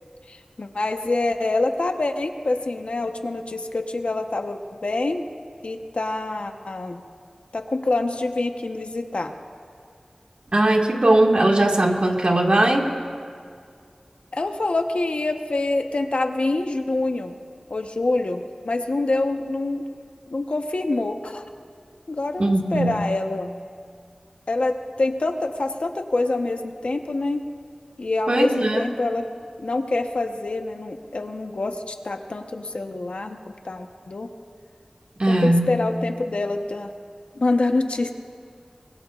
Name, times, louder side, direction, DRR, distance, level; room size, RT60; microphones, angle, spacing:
voice 1, 0.3-5.2 5.6-7.0 7.5-9.3 14.3-17.3 17.7-19.8 20.3-21.5 22.1-23.5 24.5-27.4 28.0-29.3 29.6-34.3 35.3-36.9 37.3-38.1, left 2 dB, 75° left, 5 dB, 1.0 m, -26 dB
voice 2, 10.5-12.9 22.4-23.0 28.3-28.8 35.2-35.7, right 1 dB, 60° right, 1 dB, 1.9 m, -19 dB
24.5 x 21.5 x 2.5 m, 2.2 s
wide cardioid pair, 45°, 2 cm